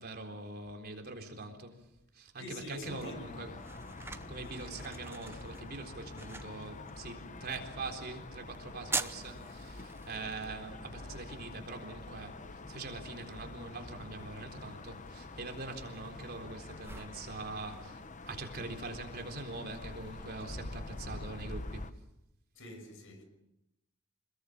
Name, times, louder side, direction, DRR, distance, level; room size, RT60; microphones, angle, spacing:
voice 1, 0.0-1.8 2.1-3.6 4.1-12.4 12.7-21.9, right 3 dB, 45° right, 3.9 m, -43 dB
voice 2, 2.4-3.3 22.5-23.2, left 1 dB, 65° left, 6.1 m, -45 dB
sound 1, 2.9-21.9, left 2 dB, 35° left, 1.0 m, -46 dB
sound 2, 2.9-20.5, right 3 dB, 10° right, 0.8 m, -47 dB
sound 3, 3.9-11.6, equal, 90° left, 4.5 m, -58 dB
27.5 x 21.0 x 7.4 m
head